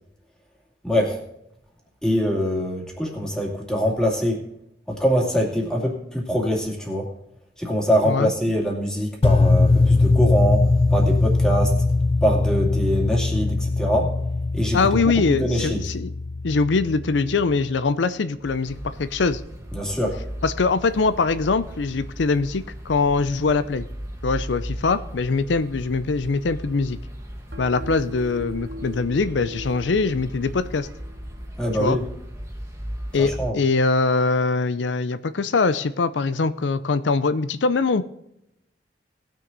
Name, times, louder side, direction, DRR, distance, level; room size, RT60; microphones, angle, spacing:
voice 1, 0.8-1.2 2.0-4.4 4.9-7.1 7.6-11.7 12.2-14.1 14.5-14.8 15.3-15.8 19.7-20.2 31.6-32.0 33.2-33.6, equal, 5° left, -1 dB, 2.4 m, -23 dB
sound 1, 9.2-17.4, left 3 dB, 30° left, 0.4 m, -21 dB
voice 2, 14.7-16.1 16.4-19.4 20.4-23.9 24.2-27.0 27.6-30.9 31.8-32.0 33.1-38.0, left 4 dB, 80° left, 13 dB, 0.5 m, -22 dB
sound 2, 16.8-19.9 27.5-31.5, equal, 65° right, 1.2 m, -41 dB
sound 3, 18.4-33.5, equal, 15° right, 1.7 m, -37 dB
19.0 x 6.4 x 3.9 m, 0.81 s
head